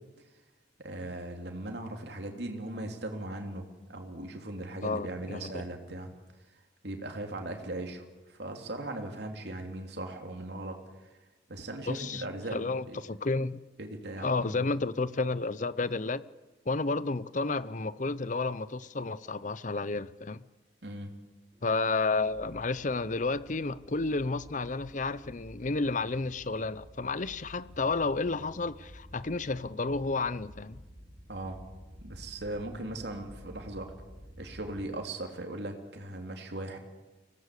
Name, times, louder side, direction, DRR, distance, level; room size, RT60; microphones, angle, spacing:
voice 1, 0.8-6.1 6.8-11.1 11.5-13.0 13.8-14.6 20.8-21.1 31.3-31.6 32.0-33.9 34.4-36.8, right 1 dB, 60° right, 3.2 m, -39 dB
voice 2, 4.8-5.6 11.9-12.2 12.5-13.6 14.2-16.2 16.7-20.4 21.6-30.8, left 3 dB, 45° left, 0.7 m, -31 dB
sound 1, 21.5-34.8, equal, 20° right, 4.8 m, -51 dB
24.5 x 18.0 x 8.3 m
head